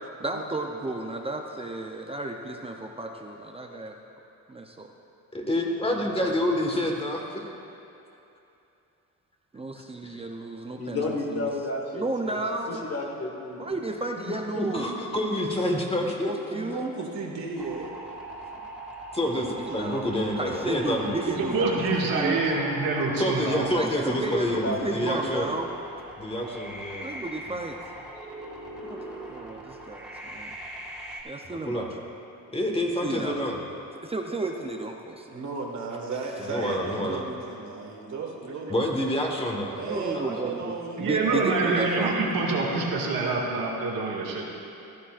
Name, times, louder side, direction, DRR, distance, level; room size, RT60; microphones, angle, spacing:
voice 1, 0.2-4.0 4.5-4.9 5.8-6.6 9.5-11.5 11.9-12.8 13.6-14.9 16.2-16.9 19.6-22.4 23.8-25.7 27.0-27.8 28.8-29.0 29.3-30.5 31.2-32.0 33.0-33.4 34.0-35.4 39.9-40.7 41.0-42.3, right 2 dB, 15° right, 2 dB, 0.6 m, -33 dB
voice 2, 5.3-7.4 10.0-10.2 14.5-16.8 19.1-21.2 23.2-25.5 26.2-27.1 31.5-31.9 32.5-33.6 36.4-37.3 38.7-39.8 40.1-40.2, left 1 dB, 15° left, 0 dB, 1.6 m, -28 dB
voice 3, 10.8-12.4 12.7-13.6 24.6-24.8, left 2 dB, 45° left, 1 dB, 1.6 m, -31 dB
voice 4, 16.5-17.9 35.3-38.9 39.8-42.3, right 4 dB, 55° right, 0 dB, 1.8 m, -34 dB
sound 1, 17.5-31.2, right 1 dB, ahead, 2.3 m, -41 dB
voice 5, 21.4-23.7 41.0-44.5, right 3 dB, 90° right, -3 dB, 2.0 m, -26 dB
15.5 x 13.0 x 2.5 m, 2.8 s
cardioid pair, 105°, 34 cm